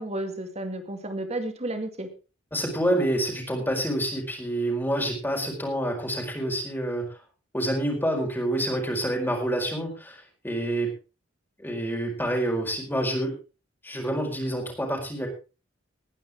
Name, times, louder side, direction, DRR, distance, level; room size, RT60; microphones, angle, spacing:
voice 1, 0.0-2.1, right 1 dB, 35° right, 7 dB, 2.3 m, -32 dB
voice 2, 2.5-7.0 7.5-10.9 11.6-13.3 13.8-15.3, right 1 dB, 10° left, 0 dB, 4.7 m, -27 dB
19.5 x 10.5 x 3.7 m, 0.33 s
head